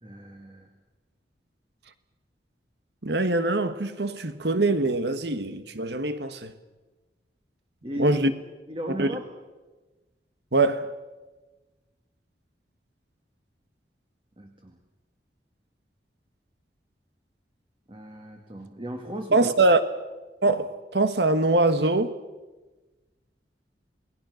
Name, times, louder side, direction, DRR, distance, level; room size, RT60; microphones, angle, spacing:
voice 1, 0.0-0.7 7.8-8.2 8.7-9.3 14.4-14.8 17.9-19.5, right 1 dB, 30° right, 2.0 m, -36 dB
voice 2, 3.0-6.5 8.0-8.3 8.9-9.1 10.5-10.9 19.3-19.8 20.4-22.1, right 2 dB, 70° right, 1.5 m, -23 dB
28.5 x 19.5 x 6.5 m
head